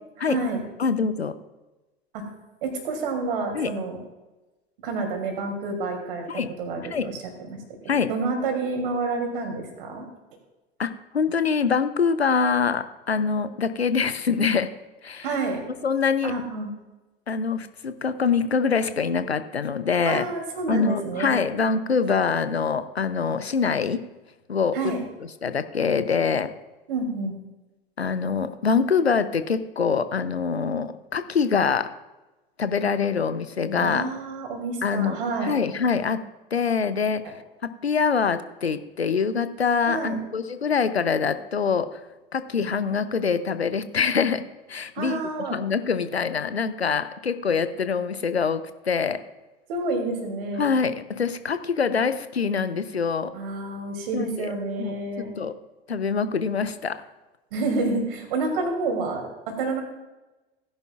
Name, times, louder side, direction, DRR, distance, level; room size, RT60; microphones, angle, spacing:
voice 1, 0.2-0.6 2.1-2.2 2.6-4.0 4.8-6.3 6.6-7.1 7.4-7.6 8.1-10.1 15.2-15.6 16.2-16.7 20.0-21.5 24.7-25.0 26.9-27.3 33.7-35.5 37.2-37.3 39.9-40.2 44.9-45.6 49.7-50.7 53.3-55.4 57.5-59.8, right 3 dB, 60° right, 3 dB, 3.1 m, -28 dB
voice 2, 0.8-1.3 3.5-3.7 6.3-6.5 6.8-7.1 7.9-8.1 10.8-14.7 15.0-15.3 15.8-16.3 17.3-20.3 20.7-24.0 24.5-24.8 25.4-26.5 28.0-31.9 32.6-34.0 34.8-35.2 35.4-36.2 36.5-37.3 37.6-42.0 42.3-44.4 44.7-45.2 45.5-49.2 50.6-53.3 54.1-54.5 54.8-55.0 55.4-55.5 55.9-57.0, left 5 dB, 85° left, 12 dB, 0.8 m, -24 dB
17.0 x 10.5 x 2.4 m, 1.1 s
figure-of-eight pair, 80°, 31 cm